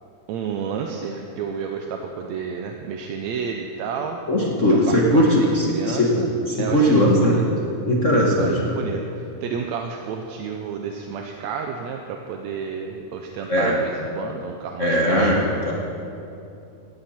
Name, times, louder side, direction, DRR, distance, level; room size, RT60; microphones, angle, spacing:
voice 1, 0.3-4.2 4.7-6.3 6.6-7.5 8.4-15.4, right 6 dB, 70° right, 2 dB, 1.9 m, -31 dB
voice 2, 4.3-7.3 7.9-8.8 13.5-13.8 14.8-15.7, equal, 40° left, -3 dB, 1.0 m, -19 dB
17.5 x 14.5 x 4.3 m, 2.7 s
omnidirectional pair, 3.6 m